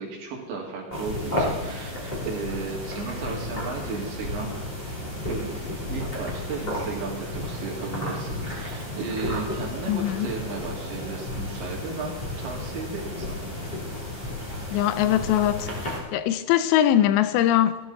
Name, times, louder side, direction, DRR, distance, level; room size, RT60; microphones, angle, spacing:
voice 1, 0.0-4.6 5.3-13.5, right 4 dB, 80° right, -1 dB, 4.5 m, -34 dB
sound 1, 0.9-16.0, left 1 dB, 10° left, 2.8 m, -32 dB
voice 2, 9.9-10.3 14.7-17.8, left 11 dB, 85° left, 12 dB, 2.8 m, -22 dB
16.0 x 12.5 x 4.0 m, 1.2 s
omnidirectional pair, 5.1 m